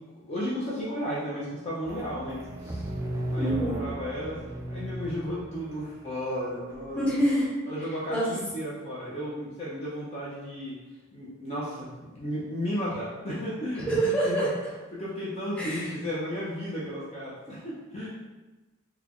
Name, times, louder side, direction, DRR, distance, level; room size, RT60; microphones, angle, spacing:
voice 1, 0.2-2.9 3.3-4.4 4.7-7.0 7.7-10.7 11.1-14.5 14.9-18.1, equal, 30° left, -7 dB, 0.6 m, -34 dB
sound 1, 1.8-6.8, equal, 15° right, 0.3 m, -35 dB
voice 2, 3.3-3.8 6.9-7.5 8.1-8.2 13.9-14.5 15.6-15.9, right 1 dB, 5° left, -8 dB, 0.9 m, -26 dB
4.0 x 2.2 x 2.9 m, 1.1 s
head